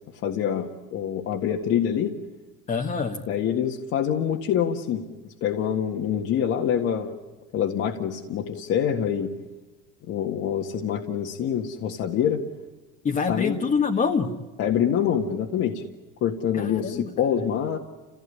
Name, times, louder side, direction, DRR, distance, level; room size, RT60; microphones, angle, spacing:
voice 1, 0.2-2.1 3.3-5.0 5.4-7.2 7.5-9.3 10.1-12.4 13.3-13.6 14.6-15.8 16.2-17.8, left 9 dB, 50° left, 0 dB, 1.8 m, -25 dB
voice 2, 2.7-3.2 13.0-14.3 16.5-17.1, left 5 dB, 25° left, 1 dB, 1.6 m, -25 dB
30.0 x 16.0 x 9.9 m, 1.2 s
cardioid pair, 145°, 29 cm